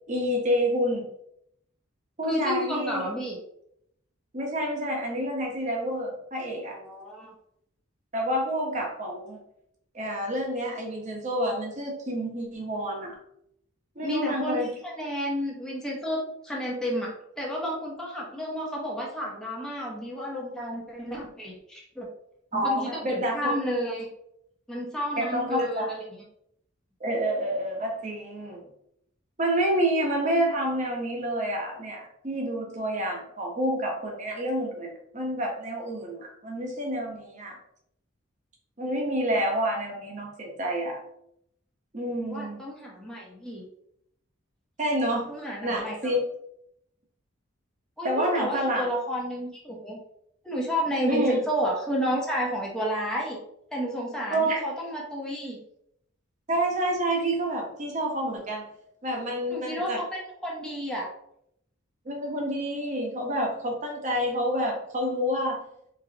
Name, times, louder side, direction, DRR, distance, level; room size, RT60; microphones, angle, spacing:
voice 1, 0.1-1.0 2.2-3.1 4.3-6.8 8.1-9.4 9.9-13.2 14.0-14.7 22.5-23.5 25.2-25.9 27.0-28.6 29.4-37.6 38.8-41.0 41.9-42.6 44.8-45.3 45.6-46.2 48.0-48.9 51.1-51.4 54.3-54.6 56.5-58.6 59.0-60.0 62.0-65.6, equal, 40° right, 0 dB, 1.0 m, -28 dB
voice 2, 2.3-3.4 6.7-7.3 14.0-16.2 16.4-22.1 22.5-24.1 24.7-26.0 42.2-43.7 45.3-46.0 48.0-50.0 50.4-53.4 53.7-55.6 59.5-61.1, equal, 5° left, -4 dB, 0.9 m, -31 dB
4.0 x 4.0 x 2.9 m, 0.76 s
head